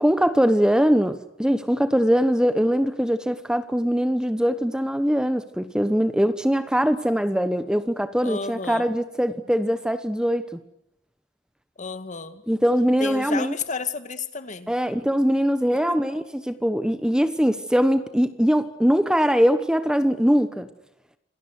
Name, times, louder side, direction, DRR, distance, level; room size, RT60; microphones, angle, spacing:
voice 1, 0.0-10.5 12.5-13.5 14.7-20.7, equal, 5° right, 11 dB, 1.1 m, -22 dB
voice 2, 8.2-8.9 11.8-12.4 13.0-14.7 15.9-16.0, left 4 dB, 40° left, 11 dB, 1.9 m, -32 dB
27.5 x 19.0 x 9.6 m, 0.75 s
head